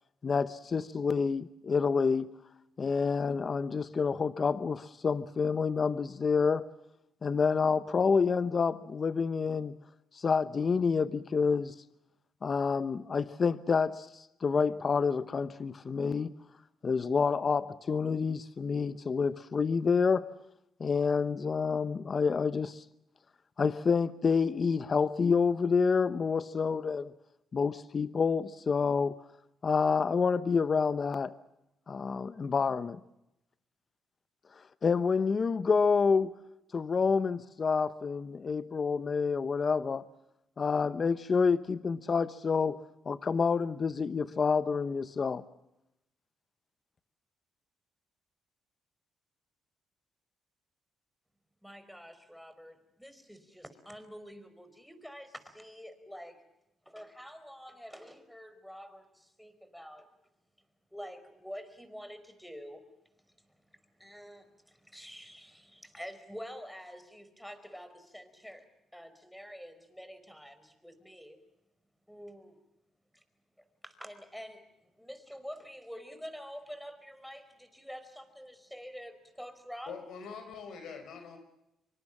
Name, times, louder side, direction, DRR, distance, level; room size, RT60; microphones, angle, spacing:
voice 1, 0.2-2.3 2.8-6.7 7.2-9.8 10.1-11.7 12.4-16.3 16.8-20.3 20.8-22.8 23.6-27.1 27.5-29.2 29.6-31.3 31.9-33.0 34.8-36.4 36.7-40.0 40.6-45.4, left 5 dB, 40° left, 0.9 m, -28 dB
voice 2, 51.6-56.4 56.8-60.1 60.9-62.8 64.0-68.6 68.9-71.4 72.1-72.6 73.1-73.2 73.6-74.6 75.0-80.0, equal, ahead, 4.8 m, -47 dB
voice 3, 79.9-81.4, left 5 dB, 75° left, 5.7 m, -44 dB
26.0 x 24.5 x 7.3 m
cardioid pair, 90°, 0 cm